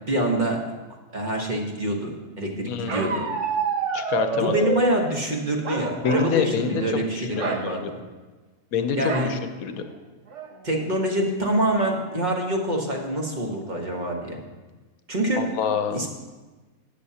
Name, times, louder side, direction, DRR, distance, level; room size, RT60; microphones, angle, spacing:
voice 1, 0.1-0.7 1.1-3.3 4.3-7.8 9.0-9.3 10.6-14.4 15.1-15.5 15.9-16.1, right 1 dB, 35° right, 1 dB, 1.3 m, -25 dB
voice 2, 2.7-3.3 3.9-4.6 6.0-6.8 7.2-7.8 8.7-9.7 15.4-16.0, left 7 dB, 75° left, 8 dB, 1.2 m, -26 dB
Bark, 2.9-5.0 5.6-6.4 6.7-6.9 7.3-7.6 9.1-9.4 9.9-10.0 10.3-10.8, right 4 dB, 55° right, 1.2 m, -28 dB
13.0 x 9.4 x 2.8 m, 1.3 s
omnidirectional pair, 1.5 m